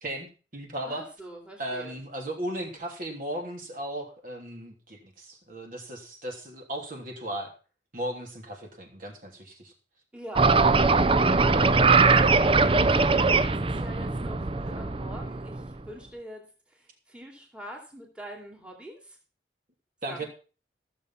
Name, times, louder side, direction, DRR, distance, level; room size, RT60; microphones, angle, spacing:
voice 1, 0.0-1.0 1.6-7.5 7.9-9.7 20.0-20.2, right 1 dB, 50° right, 2 dB, 3.1 m, -36 dB
voice 2, 0.9-1.9 10.1-10.6 11.1-19.2 20.1-20.2, equal, 5° right, 0 dB, 2.7 m, -44 dB
sound 1, 10.3-15.7, right 4 dB, 30° right, 0.6 m, -21 dB
15.5 x 7.0 x 5.8 m, 0.37 s
head